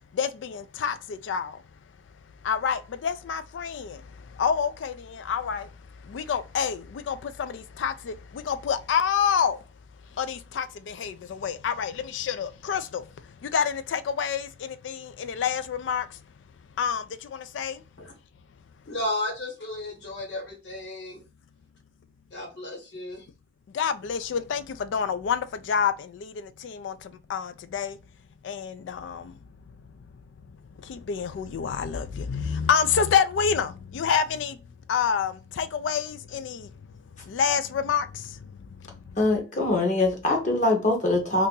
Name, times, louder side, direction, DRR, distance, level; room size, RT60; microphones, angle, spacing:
voice 1, 0.2-0.9 1.3-1.5 2.5-3.9 4.4-4.9 5.3-5.6 6.1-6.8 7.1-7.2 7.8-7.9 8.5-9.6 10.2-10.6 11.0-11.1 11.4-13.0 13.5-14.5 14.9-15.0 15.2-16.0 16.8-17.0 17.6-17.7 23.8-24.6 24.9-25.4 25.7-25.9 26.8-26.9 27.3-27.9 28.5-28.7 29.0-29.2 31.1-33.7 33.9-34.5 34.9-35.3 35.6-36.6 37.3-38.0, left 7 dB, 80° left, 0.3 m, -26 dB
voice 2, 18.9-21.2 22.3-23.2, left 1 dB, 65° left, 1.3 m, -33 dB
voice 3, 39.2-41.5, left 2 dB, 40° left, 0.8 m, -23 dB
2.7 x 2.5 x 3.7 m
head